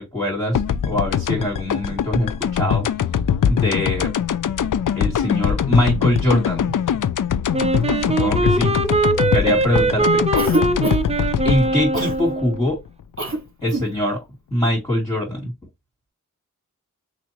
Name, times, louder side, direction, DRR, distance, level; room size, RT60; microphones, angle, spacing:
voice 1, 0.0-2.8 3.5-4.1 5.0-6.7 8.0-8.7 9.3-10.2 11.4-12.8 13.6-14.2 14.5-15.5, left 1 dB, 10° left, 2.6 m, -23 dB
sound 1, 0.5-13.4, left 8 dB, 75° left, 0.5 m, -22 dB
Wind instrument woodwind instrument, 7.5-12.6, right 3 dB, 20° right, 0.6 m, -21 dB
Cough, 10.3-11.2 11.9-12.2 13.2-13.4 13.6-13.9, right 1 dB, 40° right, 1.7 m, -24 dB
6.1 x 2.6 x 3.0 m
wide cardioid pair, 85°, 32 cm